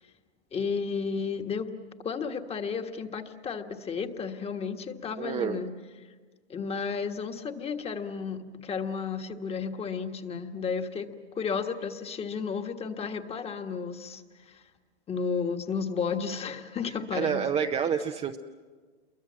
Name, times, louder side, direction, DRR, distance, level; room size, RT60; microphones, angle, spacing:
voice 1, 0.5-1.7 2.0-5.7 6.5-11.1 11.3-14.6 15.1-17.4, left 5 dB, 20° left, 7 dB, 1.5 m, -33 dB
voice 2, 5.2-5.6 17.1-18.4, right 7 dB, 20° right, 5 dB, 0.7 m, -28 dB
28.0 x 23.0 x 7.5 m, 1.4 s
hypercardioid pair, 125°, 32 cm